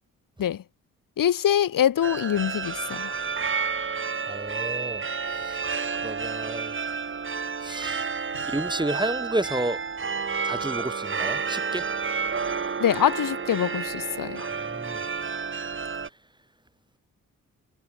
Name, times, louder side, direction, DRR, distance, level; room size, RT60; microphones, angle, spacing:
voice 1, 1.2-3.1 12.8-14.5, left 10 dB, 65° left, 1.6 m, -24 dB
sound 1, 2.0-16.1, right 5 dB, 35° right, 1.6 m, -30 dB
voice 2, 4.3-5.6 6.0-6.7 7.6-8.1 8.4-9.8 10.4-11.8 14.6-15.0, right 1 dB, 10° right, 2.7 m, -31 dB
hypercardioid pair, 45°, 35 cm